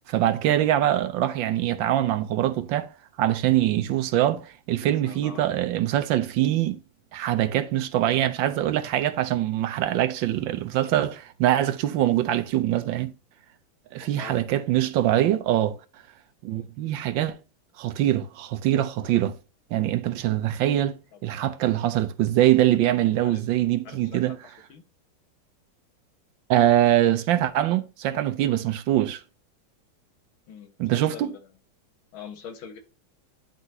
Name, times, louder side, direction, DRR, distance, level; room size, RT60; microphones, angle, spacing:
voice 1, 0.1-2.9 3.2-6.8 7.1-13.1 13.9-15.8 16.4-17.4 17.8-19.4 19.7-20.9 21.2-24.4 26.5-29.2 30.8-31.3, right 13 dB, 75° right, 1.3 m, -23 dB
voice 2, 4.8-5.6 14.0-14.4 16.5-16.7 21.1-21.9 23.2-23.4 23.8-24.8 30.5-31.5 32.1-32.8, left 7 dB, 75° left, 2.1 m, -44 dB
10.5 x 3.9 x 2.7 m
omnidirectional pair, 2.3 m